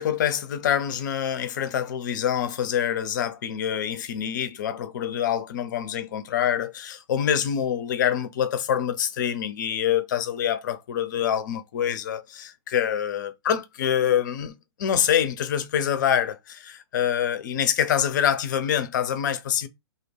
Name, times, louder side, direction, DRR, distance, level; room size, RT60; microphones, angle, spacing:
voice 1, 0.0-19.7, left 9 dB, 45° left, 0.4 m, -26 dB
2.3 x 2.1 x 3.1 m
figure-of-eight pair, 115°, 14 cm